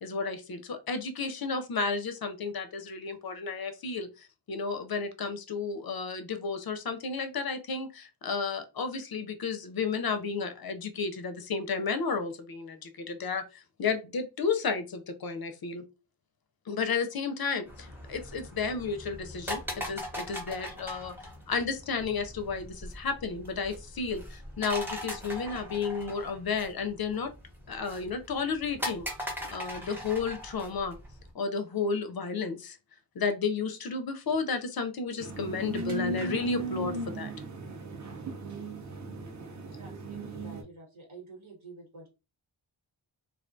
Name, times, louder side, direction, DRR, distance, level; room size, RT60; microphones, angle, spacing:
voice 1, 0.0-15.8 16.7-21.2 21.5-27.3 27.7-31.0 31.3-32.8 33.2-37.3, left 5 dB, 50° left, 8 dB, 0.4 m, -32 dB
sound 1, 17.6-31.3, equal, 5° right, 0.7 m, -40 dB
sound 2, 35.2-40.6, right 1 dB, 40° right, 0.5 m, -36 dB
voice 2, 39.7-42.1, right 3 dB, 90° right, -1 dB, 1.3 m, -49 dB
2.3 x 2.2 x 2.5 m, 0.28 s
wide cardioid pair, 85°, 48 cm